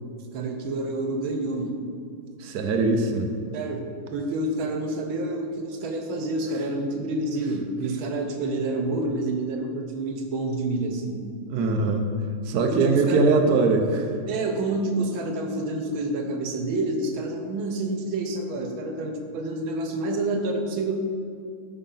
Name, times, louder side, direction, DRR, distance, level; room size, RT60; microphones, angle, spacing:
voice 1, 0.3-1.8 3.5-11.2 12.7-13.2 14.3-21.2, right 2 dB, 85° right, 4 dB, 1.7 m, -28 dB
voice 2, 2.4-3.3 11.4-14.1, right 3 dB, 65° right, 3 dB, 1.2 m, -22 dB
12.5 x 5.3 x 3.8 m, 2.4 s
omnidirectional pair, 2.1 m